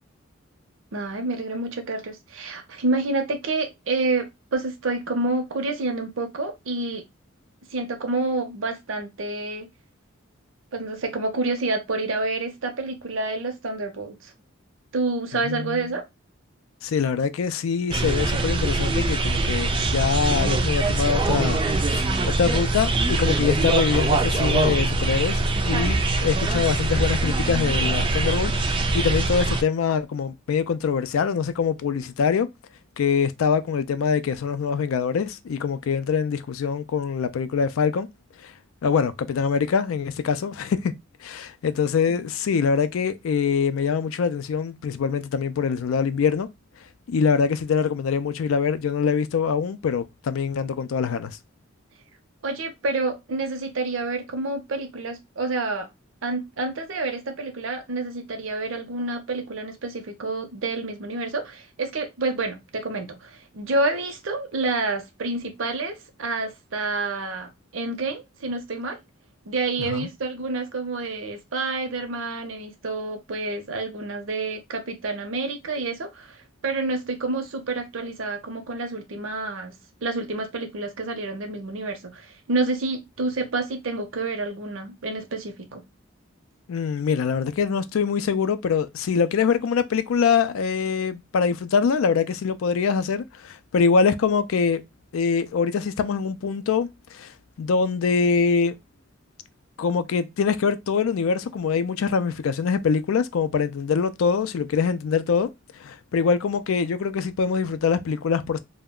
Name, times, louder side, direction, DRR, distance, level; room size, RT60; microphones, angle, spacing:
voice 1, 0.9-7.0 7.7-9.7 10.7-14.3 14.9-16.1 52.4-55.9 56.2-69.0 69.5-79.7 80.0-85.8, right 3 dB, 70° right, 0.6 m, -28 dB
voice 2, 15.3-15.9 16.8-22.1 22.4-32.5 33.0-38.1 38.4-38.5 38.8-40.9 41.2-46.5 47.1-51.4 69.8-70.1 86.7-94.8 95.1-97.3 97.6-98.8 99.8-105.5 105.8-108.6, left 6 dB, 85° left, 0.4 m, -24 dB
sound 1, 17.9-29.6, right 2 dB, 25° right, 0.3 m, -23 dB
2.3 x 2.1 x 3.6 m
head